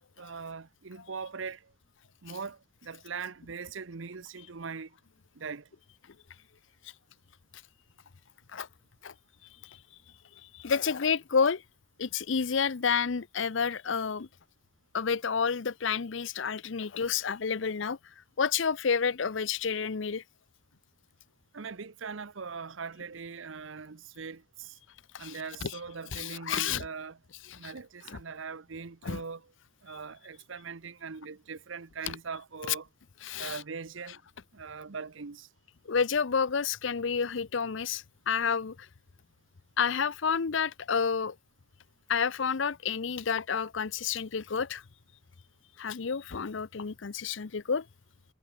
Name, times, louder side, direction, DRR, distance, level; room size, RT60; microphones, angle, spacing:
voice 1, 0.2-1.6 2.2-4.9 5.4-5.7 21.5-24.8 25.2-27.2 27.5-29.4 29.8-32.9 33.3-34.2 34.5-35.5, right 5 dB, 75° right, 0.8 m, -41 dB
voice 2, 10.5-11.6 12.0-14.3 14.9-18.0 18.4-20.2 25.1-25.3 25.6-25.7 26.1-26.8 27.5-27.7 28.1-28.2 29.0-29.2 32.1-32.2 33.2-33.6 35.9-38.9 39.8-41.3 42.1-44.8 45.8-47.8, left 6 dB, 70° left, 0.6 m, -30 dB
head